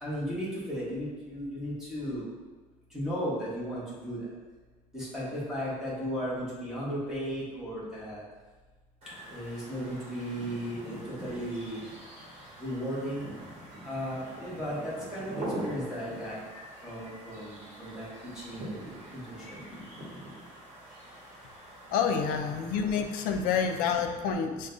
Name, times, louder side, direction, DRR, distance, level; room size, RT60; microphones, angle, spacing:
voice 1, 0.0-2.3 2.9-4.3 4.9-8.2 9.3-11.8 12.6-13.2 13.8-16.4 16.8-18.1 18.3-19.6 21.9-22.0, equal, 5° right, -9 dB, 1.1 m, -35 dB
sound 1, 9.0-24.1, right 1 dB, 45° right, 1.3 m, -43 dB
voice 2, 21.9-24.7, left 6 dB, 80° left, 5 dB, 0.4 m, -28 dB
6.0 x 2.2 x 2.6 m, 1.3 s
cardioid pair, 155°, 15 cm